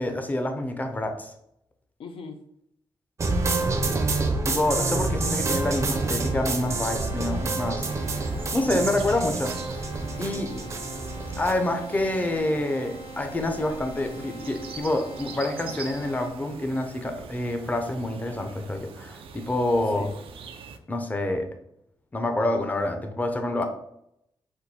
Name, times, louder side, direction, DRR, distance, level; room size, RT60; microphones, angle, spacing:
voice 1, 0.0-1.3 4.5-7.9 8.5-9.5 10.2-10.5 11.4-20.1 20.9-21.5 22.1-23.7, left 1 dB, 15° left, 5 dB, 0.5 m, -27 dB
voice 2, 2.0-2.4 3.6-4.1 10.3-10.7 19.9-20.2, left 4 dB, 85° left, 6 dB, 0.6 m, -40 dB
sound 1, 3.2-11.5, right 3 dB, 35° right, 0.5 m, -27 dB
sound 2, 5.2-16.3, right 1 dB, 60° left, 1.4 m, -43 dB
sound 3, 7.8-20.8, right 5 dB, 90° right, 0.5 m, -42 dB
4.4 x 2.6 x 4.1 m, 0.76 s
wide cardioid pair, 135°, 9 cm